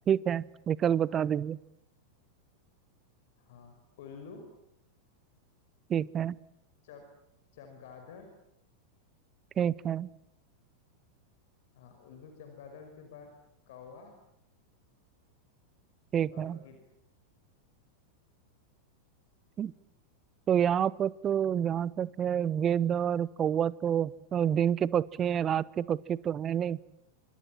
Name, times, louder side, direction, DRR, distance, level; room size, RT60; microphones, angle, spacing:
voice 1, 0.1-1.6 5.9-6.4 9.6-10.1 16.1-16.6 19.6-19.7 20.5-26.8, right 9 dB, 25° right, 22 dB, 0.9 m, -28 dB
voice 2, 3.4-4.5 6.8-7.0 7.5-8.3 11.7-13.3 13.7-14.2 16.3-16.8, left 6 dB, 55° left, 5 dB, 5.3 m, -49 dB
28.0 x 25.5 x 7.5 m, 0.83 s
figure-of-eight pair, 90°, 0 cm